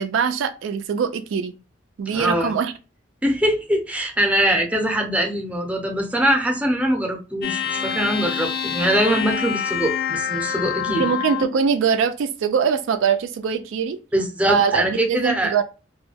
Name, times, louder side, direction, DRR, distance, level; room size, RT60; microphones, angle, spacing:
voice 1, 0.0-1.5 2.0-2.7 11.0-14.0 14.5-15.6, right 6 dB, 75° right, 0.3 m, -22 dB
voice 2, 2.1-2.5 3.2-11.1 14.1-15.5, right 1 dB, 5° right, 0.5 m, -22 dB
sound 1, 7.4-11.6, left 7 dB, 55° left, 0.3 m, -26 dB
2.2 x 2.1 x 3.2 m
head